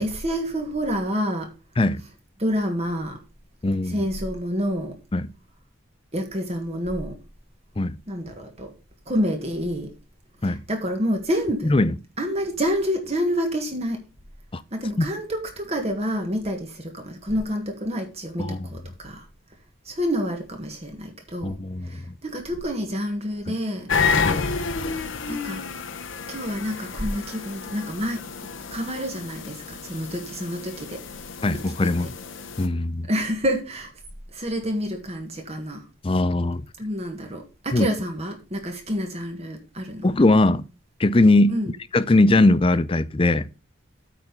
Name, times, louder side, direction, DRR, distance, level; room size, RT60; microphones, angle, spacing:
voice 1, 0.0-1.5 2.4-3.2 3.8-5.0 6.1-7.2 8.1-8.7 9.0-9.9 10.4-11.7 12.2-14.1 14.7-19.3 19.8-21.6 21.8-23.9 25.3-25.6 26.3-28.3 28.7-31.0 31.8-32.1 33.1-33.9 34.3-35.9 36.8-40.2 41.5-41.7, equal, 30° right, 1.6 m, -28 dB
voice 2, 3.6-3.9 5.1-5.3 7.8-8.0 10.4-10.6 11.7-11.9 14.5-14.6 15.0-15.1 18.4-18.6 21.4-22.0 23.5-23.6 24.2-24.4 31.4-32.1 32.6-33.1 36.0-36.6 37.7-37.9 40.0-40.6 41.0-41.5 41.9-43.5, left 2 dB, 25° left, 0.5 m, -20 dB
sound 1, 23.9-32.7, left 5 dB, 75° left, 1.0 m, -30 dB
8.8 x 4.2 x 7.0 m
head